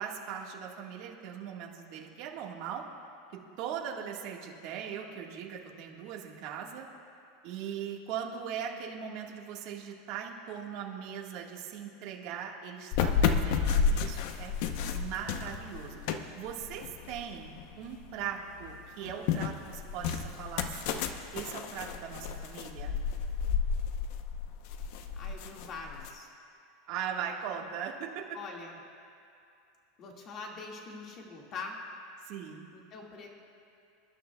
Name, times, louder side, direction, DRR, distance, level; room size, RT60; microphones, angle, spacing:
voice 1, 0.0-2.8 3.3-6.9 7.4-14.5 14.9-16.0 16.3-20.9 21.3-23.0 26.9-28.2 32.2-32.7, right 8 dB, 50° right, 0 dB, 1.5 m, -40 dB
sound 1, 12.9-18.1 18.5-26.1, left 6 dB, 55° left, 0.7 m, -32 dB
voice 2, 25.1-26.3 28.3-28.8 30.0-31.8 32.7-33.3, left 4 dB, 35° left, 0 dB, 1.8 m, -43 dB
26.0 x 11.5 x 2.3 m, 2.5 s
supercardioid pair, 155°, 0 cm